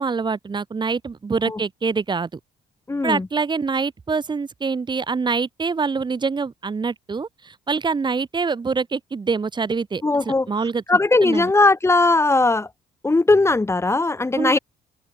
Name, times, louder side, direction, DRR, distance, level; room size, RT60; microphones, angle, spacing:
voice 1, 0.0-2.4 3.0-10.8 11.2-11.5 14.4-14.6, right 4 dB, 25° right, 3.9 m, -25 dB
voice 2, 2.9-3.3 10.0-10.5 10.9-12.7 13.0-14.6, left 2 dB, 15° left, 3.0 m, -18 dB
open air
cardioid pair, 110°, 17 cm